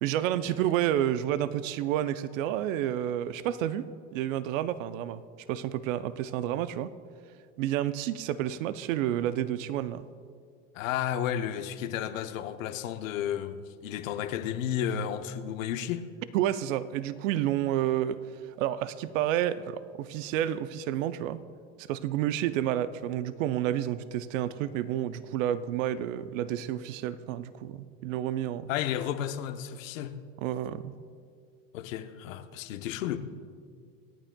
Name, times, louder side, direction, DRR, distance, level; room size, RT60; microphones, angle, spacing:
voice 1, 0.0-3.8 4.1-5.2 5.5-6.9 7.6-10.1 16.3-18.2 18.6-21.4 21.8-28.7 30.4-30.9, right 11 dB, 85° right, 0.6 m, -30 dB
voice 2, 10.7-16.0 28.7-30.1 31.7-33.2, left 10 dB, 90° left, 0.8 m, -32 dB
27.0 x 9.0 x 2.2 m
supercardioid pair, 105°, 38 cm